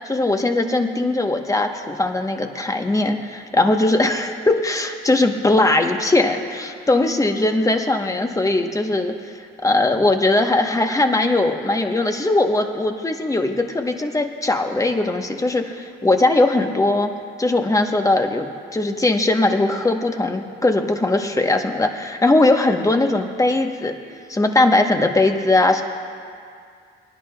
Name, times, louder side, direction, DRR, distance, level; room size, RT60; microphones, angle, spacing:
voice 1, 0.1-9.1 9.6-17.1 17.4-23.9 24.3-25.8, left 2 dB, 15° left, 4 dB, 1.0 m, -19 dB
25.5 x 10.5 x 2.3 m, 2.3 s
cardioid pair, 90°, 20 cm